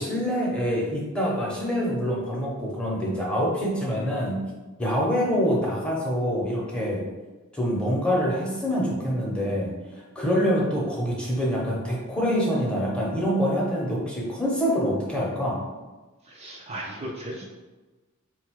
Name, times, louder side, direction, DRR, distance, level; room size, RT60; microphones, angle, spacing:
voice 1, 0.0-4.4 4.8-7.0 7.5-9.7 10.1-15.6, equal, 5° left, -4 dB, 0.8 m, -25 dB
voice 2, 16.2-17.4, right 1 dB, 30° right, -3 dB, 0.4 m, -36 dB
3.9 x 2.3 x 4.5 m, 1.2 s
head